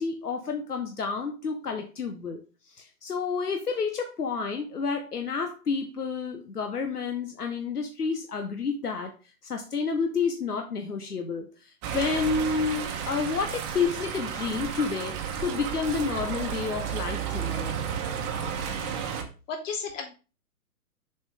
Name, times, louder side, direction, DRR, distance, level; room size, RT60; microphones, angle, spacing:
voice 1, 0.0-2.4 2.7-9.1 9.4-17.8, left 5 dB, 90° left, 5 dB, 1.1 m, -30 dB
sound 1, 11.8-19.2, right 8 dB, 25° right, 1.1 m, -32 dB
voice 2, 18.5-18.9 19.5-20.1, left 5 dB, 55° left, 1 dB, 2.9 m, -35 dB
7.1 x 5.6 x 3.5 m, 0.33 s
hypercardioid pair, 130°, 45 cm